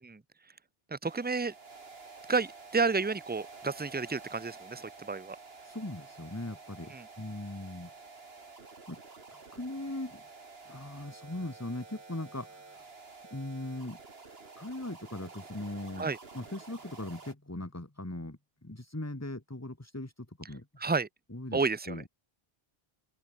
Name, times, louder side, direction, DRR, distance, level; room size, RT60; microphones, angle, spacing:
voice 1, 0.9-1.5 2.3-5.4 6.9-7.0 16.0-16.2 20.8-21.1 21.5-22.0, right 4 dB, 10° right, 0.5 m, -31 dB
sound 1, 1.0-17.3, right 4 dB, 70° right, 2.4 m, -50 dB
voice 2, 5.6-7.9 8.9-9.0 9.3-10.2 10.6-12.8 13.3-14.0 14.6-20.7 21.3-22.1, left 1 dB, 15° left, 1.7 m, -40 dB
open air
omnidirectional pair, 1.1 m